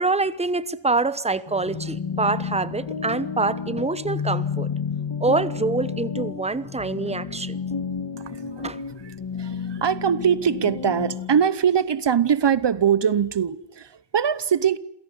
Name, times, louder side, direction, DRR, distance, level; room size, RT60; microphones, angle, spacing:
voice 1, 0.0-4.7 5.2-7.6 8.6-8.8, right 3 dB, 15° right, 1.0 m, -25 dB
sound 1, 1.5-11.4, left 6 dB, 60° left, 2.2 m, -31 dB
voice 2, 8.2-8.6 9.0-14.8, right 8 dB, 60° right, 1.0 m, -22 dB
28.0 x 17.0 x 9.8 m
wide cardioid pair, 95°, 48 cm